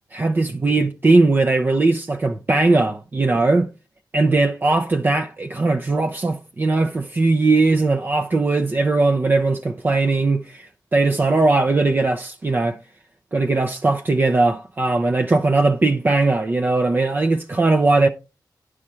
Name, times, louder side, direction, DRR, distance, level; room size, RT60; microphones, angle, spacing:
voice 1, 0.1-3.7 4.1-12.8 13.3-18.1, right 3 dB, 25° right, 0.5 m, -19 dB
10.5 x 4.9 x 4.4 m
wide cardioid pair, 175°, 8 cm